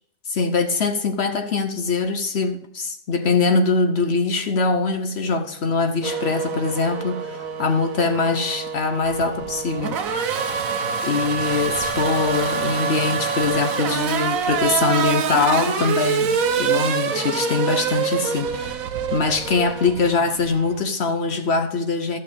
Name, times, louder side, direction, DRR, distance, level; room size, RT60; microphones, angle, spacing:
voice 1, 0.3-10.6 11.0-18.8 19.1-22.2, left 4 dB, 55° left, 0.8 m, -23 dB
Race car auto racing / Accelerating revving vroom, 6.0-20.8, right 6 dB, 65° right, 1.2 m, -25 dB
14.0 x 6.7 x 3.5 m
omnidirectional pair, 1.6 m